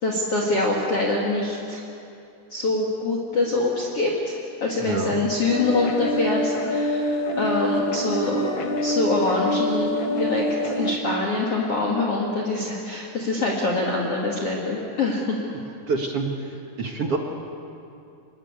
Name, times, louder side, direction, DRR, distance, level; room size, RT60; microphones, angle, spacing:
voice 1, 0.0-1.8 2.5-8.4 8.8-9.9 10.2-15.4, left 2 dB, 40° left, -1 dB, 2.7 m, -25 dB
voice 2, 4.8-5.2 15.9-16.3 16.8-17.2, right 4 dB, 50° right, 2 dB, 1.8 m, -26 dB
sound 1, 5.5-11.0, left 1 dB, 65° left, 1.2 m, -26 dB
26.5 x 21.5 x 8.4 m, 2.6 s
omnidirectional pair, 4.7 m